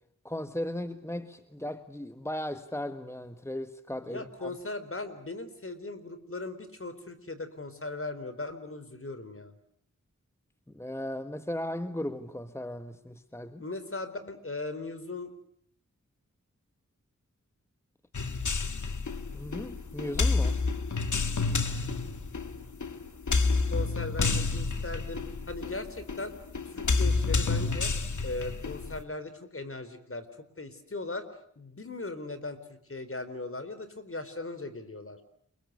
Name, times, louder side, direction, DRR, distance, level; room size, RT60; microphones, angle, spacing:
voice 1, 0.2-4.5 10.7-13.6 19.3-20.6, left 1 dB, 10° left, 9 dB, 1.6 m, -36 dB
voice 2, 4.0-9.5 13.6-15.3 23.7-26.4 26.6-27.9 28.2-30.3 30.6-31.3 31.6-35.2, left 2 dB, 45° left, 11 dB, 4.3 m, -38 dB
sound 1, 18.1-29.0, left 4 dB, 80° left, 2.1 m, -29 dB
29.5 x 23.5 x 6.7 m, 0.67 s
wide cardioid pair, 55°, 30 cm